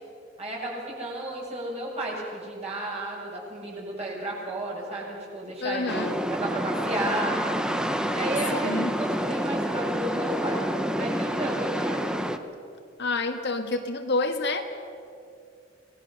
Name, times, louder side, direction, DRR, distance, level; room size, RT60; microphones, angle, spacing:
voice 1, 0.4-7.3 8.1-12.0, right 1 dB, 35° right, -3 dB, 7.6 m, -33 dB
voice 2, 5.6-6.2 8.5-9.0 13.0-14.6, left 3 dB, 60° left, 5 dB, 1.8 m, -28 dB
sound 1, 5.9-12.4, equal, 5° right, 1.0 m, -28 dB
28.5 x 19.5 x 6.7 m, 2.4 s
head